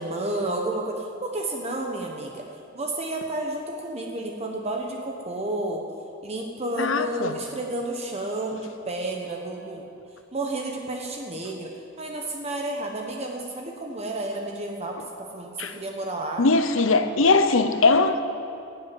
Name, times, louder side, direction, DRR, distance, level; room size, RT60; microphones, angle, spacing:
voice 1, 0.0-2.4 2.7-5.8 6.2-9.8 10.3-11.7 12.0-16.5, right 2 dB, 35° right, 1 dB, 1.1 m, -31 dB
voice 2, 6.8-7.3 15.6-15.7 16.4-18.2, left 3 dB, 85° left, 10 dB, 0.9 m, -20 dB
15.5 x 8.0 x 9.2 m, 2.6 s
head